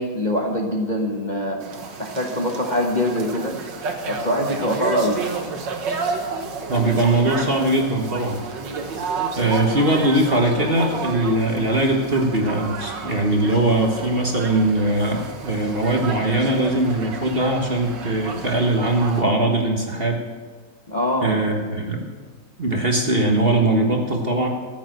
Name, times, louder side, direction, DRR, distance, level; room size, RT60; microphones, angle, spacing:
voice 1, 0.0-1.6 2.0-3.6 4.1-5.2 20.9-21.5, equal, 30° left, 1 dB, 1.1 m, -23 dB
sound 1, 1.6-19.2, right 4 dB, 70° right, 2.0 m, -31 dB
voice 2, 6.7-8.4 9.4-20.2 21.2-22.1 22.6-24.5, right 2 dB, 35° right, 2 dB, 1.4 m, -21 dB
14.0 x 8.3 x 7.7 m, 1.5 s
omnidirectional pair, 2.1 m